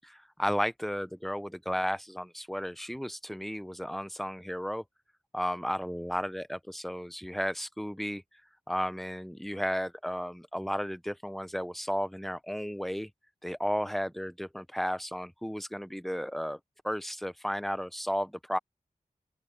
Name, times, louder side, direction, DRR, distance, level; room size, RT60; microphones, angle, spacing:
voice 1, 0.0-4.8 5.3-8.2 8.7-13.1 13.4-18.6, equal, ahead, 0.8 m, -34 dB
open air
wide cardioid pair, 110°, 13 cm